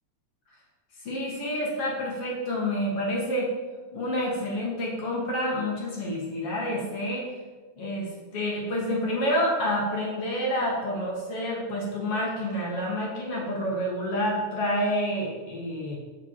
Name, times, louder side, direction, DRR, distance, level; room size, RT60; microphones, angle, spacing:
voice 1, 1.0-3.5 3.9-7.3 7.8-16.0, equal, 50° left, -3 dB, 2.6 m, -28 dB
7.7 x 5.9 x 7.5 m, 1.3 s
omnidirectional pair, 3.6 m